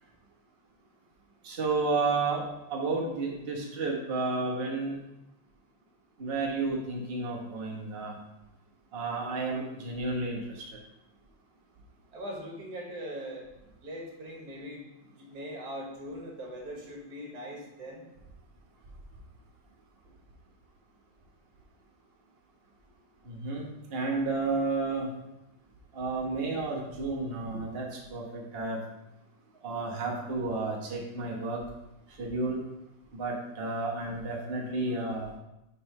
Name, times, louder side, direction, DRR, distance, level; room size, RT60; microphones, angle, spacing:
voice 1, 1.4-5.0 6.2-8.1 8.9-10.6 23.2-25.1 25.9-28.8 29.6-31.6 32.2-32.6 33.1-35.3, right 3 dB, 35° right, -2 dB, 1.2 m, -31 dB
voice 2, 12.1-13.5 13.8-14.8 15.2-18.0, equal, 55° right, 0 dB, 1.9 m, -40 dB
5.5 x 4.3 x 5.4 m, 0.90 s
omnidirectional pair, 2.2 m